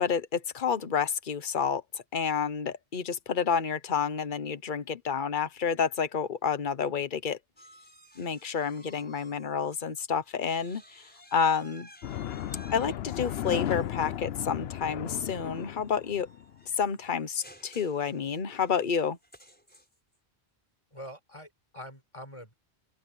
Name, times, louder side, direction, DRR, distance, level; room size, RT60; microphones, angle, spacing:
voice 1, 0.0-7.4 8.2-10.8 11.3-11.9 12.7-16.3 16.8-19.2, left 6 dB, 50° left, 1.2 m, -29 dB
sound 1, 7.6-9.9 10.2-20.2, equal, 10° left, 5.6 m, -56 dB
sound 2, 12.0-16.5, left 11 dB, 70° left, 0.8 m, -35 dB
voice 2, 20.9-22.5, equal, 30° left, 6.4 m, -44 dB
open air
omnidirectional pair, 1.1 m